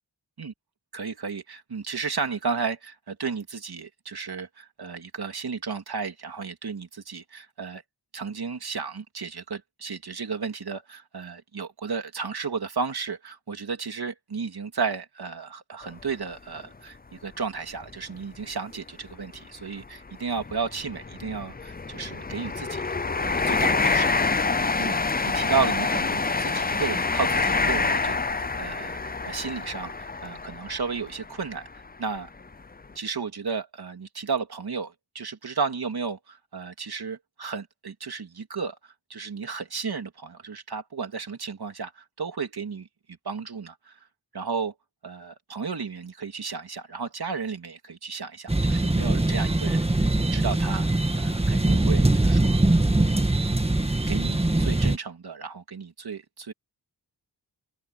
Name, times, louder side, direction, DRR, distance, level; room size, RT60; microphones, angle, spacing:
voice 1, 0.9-7.8 8.1-22.9 23.2-32.3 32.9-42.9 43.2-44.0 44.3-44.7 45.0-49.9 50.2-50.9 51.2-53.3 54.1-56.5, right 5 dB, 65° right, 3.0 m, -33 dB
sound 1, 15.8-16.0 16.6-16.7 17.8-18.0 18.2-18.4 19.1-31.8 32.4-32.5, left 4 dB, 20° left, 0.7 m, -27 dB
sound 2, 48.5-55.0, right 2 dB, 15° right, 1.6 m, -22 dB
wide cardioid pair, 105°, 41 cm